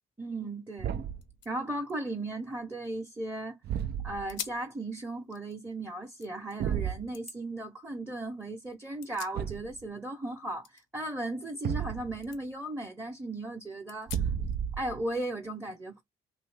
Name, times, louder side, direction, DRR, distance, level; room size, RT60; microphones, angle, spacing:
voice 1, 0.2-1.0 1.5-3.6 4.0-14.2 14.8-16.0, right 2 dB, 10° right, 0.8 m, -36 dB
sound 1, 0.8-0.9 1.2-3.4 3.8-3.9 4.3-4.7 5.2-6.6 7.1-7.4 8.7-9.9 10.1-11.9 12.2-12.4 12.9-13.0 13.9-14.6, left 9 dB, 75° left, 0.7 m, -47 dB
Thump thud, 0.8-1.3 3.6-4.4 6.6-7.1 9.3-9.8 11.6-12.3 14.1-15.0, right 8 dB, 55° right, 0.5 m, -33 dB
2.8 x 2.6 x 3.4 m
cardioid pair, 90°, 20 cm